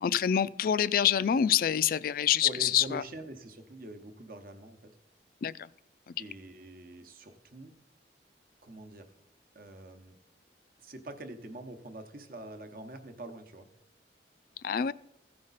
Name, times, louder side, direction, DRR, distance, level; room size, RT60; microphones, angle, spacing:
voice 1, 0.0-3.0 5.4-5.5 6.1-6.2 14.6-14.9, left 9 dB, 55° left, 18 dB, 0.3 m, -26 dB
voice 2, 2.4-4.9 6.2-7.7 8.6-9.1 9.5-10.2 10.8-13.7, right 1 dB, 50° right, 7 dB, 0.9 m, -45 dB
15.5 x 5.2 x 4.0 m, 0.82 s
head